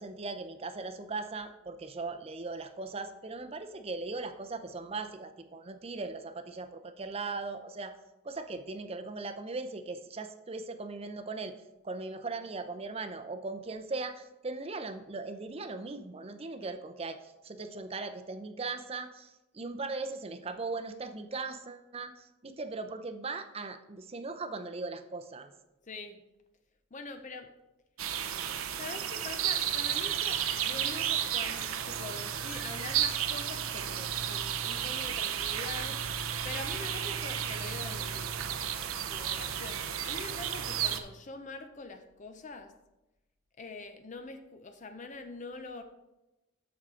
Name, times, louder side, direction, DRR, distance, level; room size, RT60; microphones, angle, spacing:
voice 1, 0.0-7.9 8.2-11.6 11.8-25.5, right 3 dB, 30° right, 8 dB, 0.6 m, -39 dB
voice 2, 25.8-26.2 26.9-27.5 28.8-36.0 36.4-42.7 43.6-45.8, left 3 dB, 35° left, 7 dB, 0.6 m, -44 dB
sound 1, 28.0-41.0, right 9 dB, 90° right, 0.6 m, -33 dB
13.5 x 4.7 x 3.7 m, 0.99 s
head